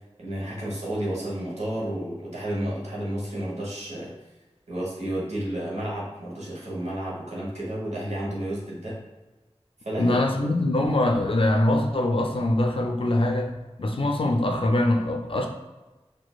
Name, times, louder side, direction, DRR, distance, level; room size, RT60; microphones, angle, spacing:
voice 1, 0.2-4.1 4.7-9.0 9.8-10.3, right 1 dB, 90° right, -6 dB, 1.0 m, -31 dB
voice 2, 10.0-15.5, left 1 dB, 55° left, 2 dB, 0.4 m, -23 dB
4.1 x 2.6 x 2.3 m, 1.1 s
wide cardioid pair, 55°, 11 cm